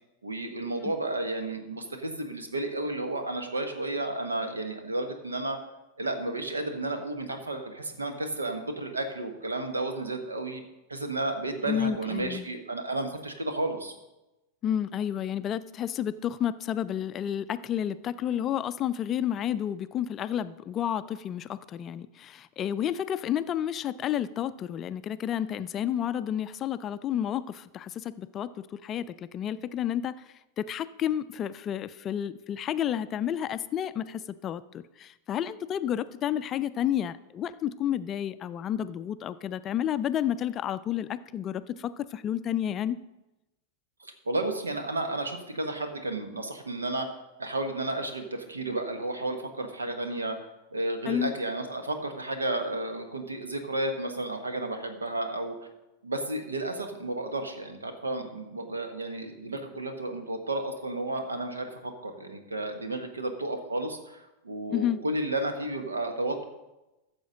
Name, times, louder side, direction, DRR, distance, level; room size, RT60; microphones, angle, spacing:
voice 1, 0.2-5.6 6.0-10.6 10.9-13.9 44.0-47.1 47.4-50.4 50.7-55.5 56.0-66.4, right 2 dB, 75° right, 6 dB, 1.2 m, -32 dB
voice 2, 11.7-12.4 14.6-30.2 30.6-43.0 51.1-51.3 64.7-65.0, left 10 dB, 30° left, 14 dB, 0.4 m, -31 dB
14.0 x 6.9 x 3.9 m, 0.98 s
figure-of-eight pair, 90°, 0 cm